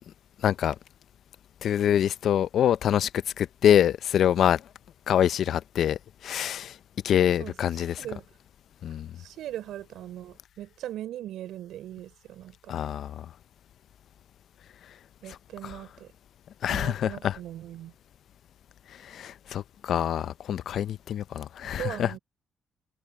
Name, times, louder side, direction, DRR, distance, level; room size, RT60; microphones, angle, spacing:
voice 1, 0.4-0.8 1.6-4.6 5.1-6.8 7.0-8.0 8.8-9.1 12.7-13.3 15.3-15.4 15.6-15.8 16.6-17.4 19.0-22.1, left 10 dB, 70° left, 0.5 m, -25 dB
voice 2, 9.2-12.8 15.2-16.1 16.7-17.9 21.8-22.2, right 12 dB, 80° right, 5.3 m, -39 dB
cardioid pair, 90°, 0 cm